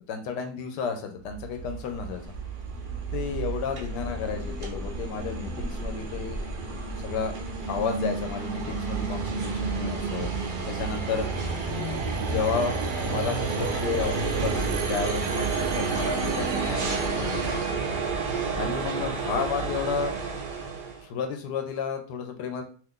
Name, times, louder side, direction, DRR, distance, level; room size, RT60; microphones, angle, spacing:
voice 1, 0.1-2.2 3.1-6.4 7.0-7.3 7.7-10.3 10.7-11.3 12.2-12.8 13.0-17.6 18.6-20.2 21.0-22.6, left 6 dB, 85° left, 5 dB, 1.2 m, -32 dB
sound 1, 1.2-21.0, right 4 dB, 75° right, 0.4 m, -30 dB
2.9 x 2.4 x 3.6 m, 0.40 s
omnidirectional pair, 1.8 m